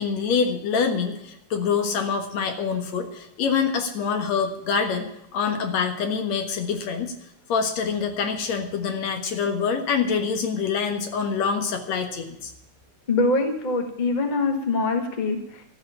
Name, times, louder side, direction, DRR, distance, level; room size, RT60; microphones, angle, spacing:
voice 1, 0.0-7.1 7.5-12.5, left 6 dB, 70° left, 6 dB, 2.6 m, -25 dB
voice 2, 13.1-15.7, left 3 dB, 25° left, 4 dB, 1.1 m, -24 dB
13.0 x 6.7 x 9.9 m, 0.81 s
omnidirectional pair, 3.3 m